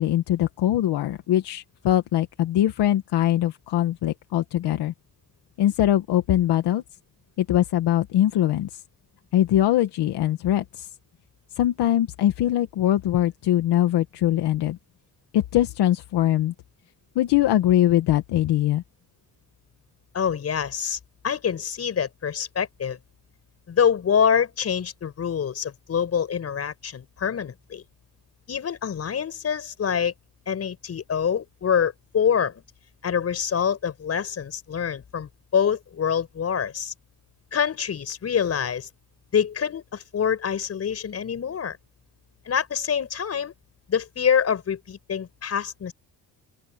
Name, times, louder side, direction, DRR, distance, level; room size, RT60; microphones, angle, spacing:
voice 1, 0.0-4.9 5.6-6.8 7.4-8.8 9.3-10.9 11.6-14.8 15.3-16.5 17.1-18.8, left 12 dB, 70° left, 1.5 m, -22 dB
voice 2, 20.1-21.0 21.2-23.0 23.7-27.8 28.5-30.1 30.5-32.6 33.0-36.9 37.5-38.9 39.3-41.8 42.5-43.5 43.9-45.9, left 7 dB, 35° left, 6.0 m, -25 dB
open air
cardioid pair, 170°, 42 cm